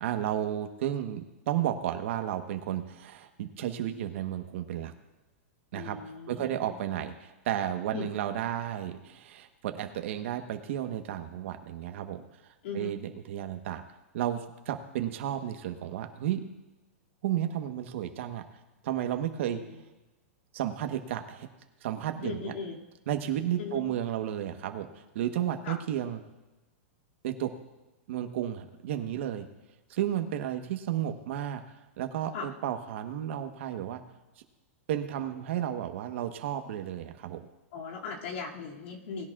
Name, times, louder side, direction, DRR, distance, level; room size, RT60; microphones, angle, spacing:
voice 1, 0.0-4.9 5.7-6.0 6.3-12.2 12.7-13.8 14.1-16.4 17.2-18.4 18.8-19.6 20.5-21.5 21.8-22.5 23.1-24.9 25.1-26.2 27.2-27.5 28.1-29.4 29.9-31.6 32.0-34.0 34.9-37.4, right 11 dB, 60° right, 6 dB, 1.2 m, -32 dB
voice 2, 5.7-7.1 7.9-8.1 12.6-13.0 19.5-19.8 22.2-22.8 23.6-23.9 25.6-25.8 32.3-32.5 37.7-39.3, left 5 dB, 60° left, -1 dB, 2.5 m, -39 dB
19.5 x 10.5 x 2.5 m, 1.1 s
hypercardioid pair, 150°, 7 cm